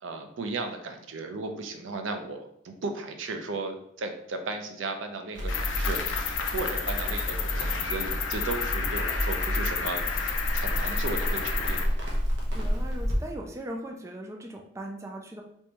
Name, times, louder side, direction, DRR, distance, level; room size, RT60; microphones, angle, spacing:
voice 1, 0.0-11.8, right 3 dB, 80° right, 5 dB, 0.5 m, -35 dB
Crackle, 5.3-13.1, equal, 65° right, 0.9 m, -30 dB
Cricket, 5.5-11.8, left 6 dB, 70° left, 0.4 m, -31 dB
voice 2, 12.5-15.4, right 1 dB, 15° right, 2 dB, 0.3 m, -39 dB
3.5 x 3.0 x 2.9 m, 0.74 s
head